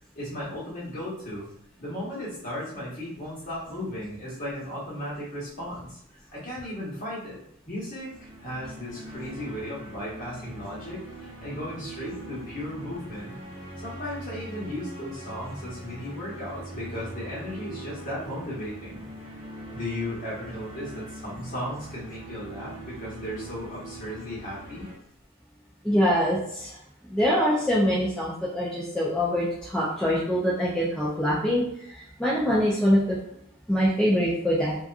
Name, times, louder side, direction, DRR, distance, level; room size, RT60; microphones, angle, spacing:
voice 1, 0.1-1.5 1.8-6.0 6.3-13.4 13.8-19.3 19.7-24.9, left 1 dB, 35° left, -7 dB, 1.1 m, -36 dB
sound 1, 8.0-25.0, right 2 dB, 20° right, 0.8 m, -42 dB
voice 2, 25.8-26.8 27.1-33.2 33.7-34.8, equal, 5° left, -7 dB, 0.4 m, -24 dB
2.7 x 2.4 x 2.4 m, 0.73 s
head